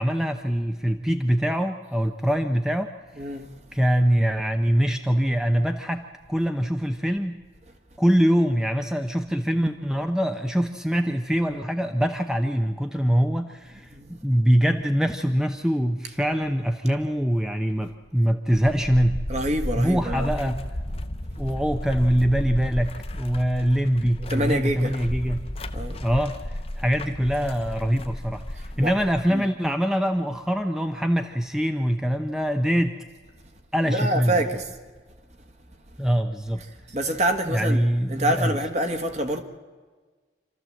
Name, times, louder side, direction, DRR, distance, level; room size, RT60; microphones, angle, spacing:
voice 1, 0.0-2.9 3.7-7.4 8.0-19.2 19.8-20.6 21.4-25.4 26.0-32.9 33.7-34.4 36.0-36.6 37.4-38.6, equal, 5° right, 0.7 m, -23 dB
voice 2, 3.2-3.5 13.9-14.2 19.3-20.5 24.3-24.9 25.7-26.0 28.8-28.9 29.3-29.4 33.9-34.6 36.9-37.8 38.1-39.4, right 1 dB, 40° right, 1.7 m, -26 dB
sound 1, 18.5-29.3, left 1 dB, 35° left, 0.9 m, -33 dB
27.0 x 13.5 x 7.7 m
head